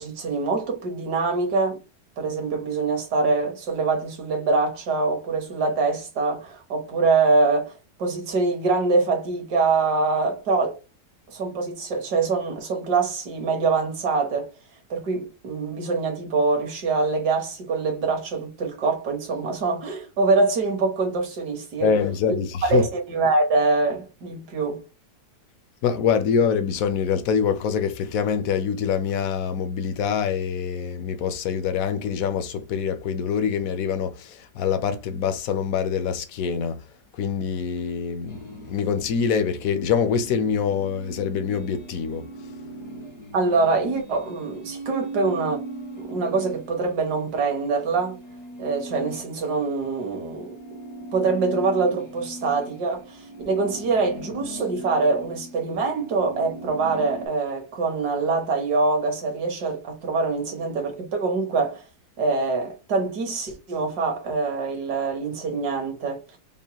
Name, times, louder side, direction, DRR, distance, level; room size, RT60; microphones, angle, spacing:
voice 1, 0.0-1.8 2.2-10.8 11.3-14.5 14.9-21.9 22.6-24.8 43.3-45.6 46.0-48.2 48.6-50.5 51.1-53.2 53.5-61.8 62.2-66.2, right 3 dB, 70° right, 1.8 m, -24 dB
voice 2, 21.8-22.9 25.8-36.8 37.1-42.3, left 7 dB, 65° left, 1.0 m, -25 dB
sound 1, 38.3-47.1 47.5-57.3, right 1 dB, 80° left, 2.5 m, -39 dB
5.4 x 2.2 x 2.8 m
omnidirectional pair, 1.8 m